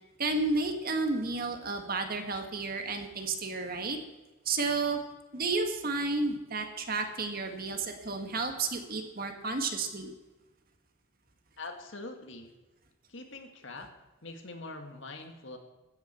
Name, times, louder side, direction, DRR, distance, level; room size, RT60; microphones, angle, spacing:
voice 1, 0.2-4.0 4.4-5.0 5.3-10.1, right 3 dB, 45° right, 5 dB, 1.7 m, -32 dB
voice 2, 11.6-12.5 13.1-13.9 14.2-15.6, left 2 dB, 60° left, 5 dB, 1.9 m, -43 dB
15.5 x 13.0 x 4.4 m, 1.1 s
head